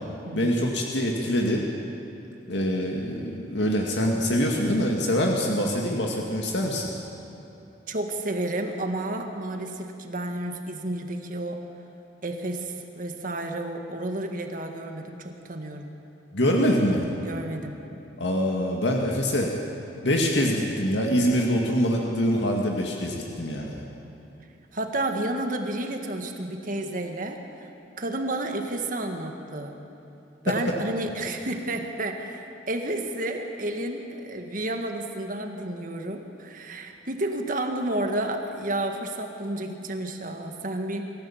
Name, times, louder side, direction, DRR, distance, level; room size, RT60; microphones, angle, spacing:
voice 1, 0.3-1.7 2.5-6.9 16.3-17.1 18.2-19.5 20.0-23.8 30.5-30.6, equal, 85° left, 0 dB, 2.1 m, -24 dB
voice 2, 7.9-11.6 12.2-16.0 17.2-17.8 24.7-27.7 28.0-29.8 30.4-41.0, right 1 dB, 50° right, 4 dB, 1.7 m, -31 dB
26.0 x 14.5 x 7.3 m, 3.0 s
head